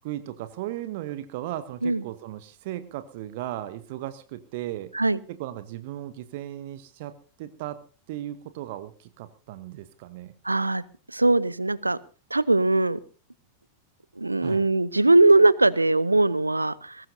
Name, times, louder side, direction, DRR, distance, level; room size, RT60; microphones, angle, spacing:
voice 1, 0.0-4.9 5.3-7.1 7.4-7.8 8.1-10.3 14.4-14.7, right 13 dB, 50° right, 13 dB, 1.0 m, -36 dB
voice 2, 10.4-10.8 11.1-12.0 12.3-13.0 14.2-17.1, right 2 dB, 85° right, 21 dB, 0.6 m, -20 dB
21.5 x 18.0 x 2.7 m, 0.35 s
figure-of-eight pair, 90°, 0 cm